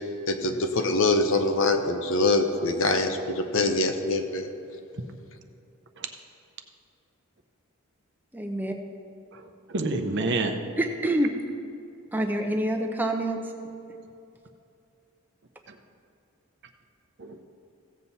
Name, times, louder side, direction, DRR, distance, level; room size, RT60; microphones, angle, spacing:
voice 1, 0.3-4.5, left 2 dB, 60° left, 6 dB, 0.9 m, -24 dB
voice 2, 8.3-8.7 10.8-11.3 12.1-13.4, right 1 dB, 10° right, 3 dB, 0.8 m, -26 dB
voice 3, 9.3-10.7 15.7-15.8 17.2-17.5, right 2 dB, 50° right, 6 dB, 0.7 m, -29 dB
16.0 x 7.6 x 4.2 m, 2.6 s
head